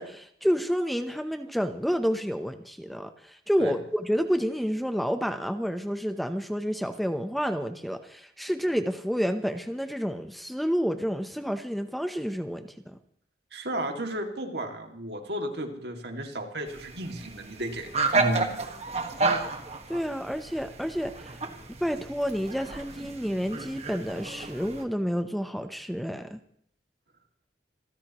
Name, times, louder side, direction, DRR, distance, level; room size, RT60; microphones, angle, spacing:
voice 1, 0.0-13.0 19.9-21.4 21.8-26.4, equal, ahead, 8 dB, 0.8 m, -29 dB
voice 2, 13.5-17.9 18.1-18.7, right 1 dB, 65° right, 4 dB, 2.3 m, -33 dB
sound 1, 16.7-24.8, right 3 dB, 35° right, 1.6 m, -31 dB
27.0 x 14.5 x 3.0 m, 0.66 s
head